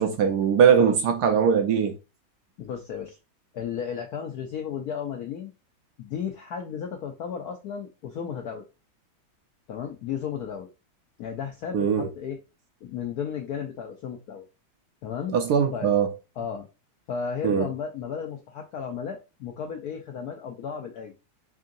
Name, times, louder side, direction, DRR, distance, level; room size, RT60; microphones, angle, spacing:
voice 1, 0.0-1.9 11.7-12.1 15.3-16.1 17.4-17.7, right 7 dB, 70° right, 1.0 m, -21 dB
voice 2, 2.6-3.2 3.5-5.5 6.0-8.6 9.7-10.7 11.2-12.4 12.8-14.4 15.0-15.3 15.7-15.9 16.4-16.7 17.1-21.2, left 7 dB, 75° left, 0.9 m, -34 dB
3.7 x 3.6 x 2.5 m
omnidirectional pair, 2.2 m